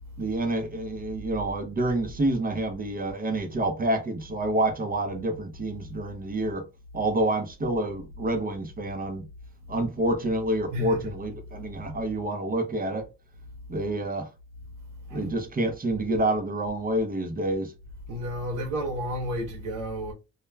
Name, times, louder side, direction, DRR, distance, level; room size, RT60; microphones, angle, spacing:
voice 1, 0.2-6.7 6.9-9.2 9.7-13.1 13.7-14.3 15.1-17.7, right 1 dB, 30° right, 0.6 m, -28 dB
voice 2, 10.7-11.0 15.1-15.3 18.1-20.1, equal, 80° right, 0.8 m, -31 dB
2.2 x 2.1 x 3.2 m
cardioid pair, 90°, 30 cm